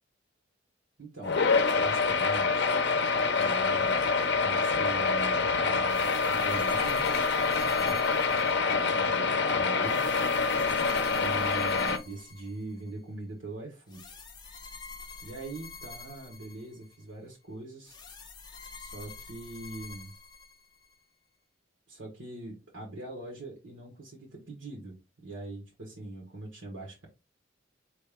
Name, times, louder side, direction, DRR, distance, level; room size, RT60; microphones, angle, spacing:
voice 1, 1.0-2.7 3.4-4.1 4.4-7.1 7.8-8.0 8.7-10.1 11.2-14.2 15.2-18.0 18.7-20.1 21.9-27.1, right 2 dB, 70° right, 1.5 m, -42 dB
sound 1, 1.2-12.0, left 4 dB, 55° left, 0.7 m, -26 dB
sound 2, 5.8-9.0 9.8-12.9 13.9-17.0 17.9-21.0, left 4 dB, 20° left, 0.9 m, -47 dB
4.4 x 3.4 x 3.5 m
head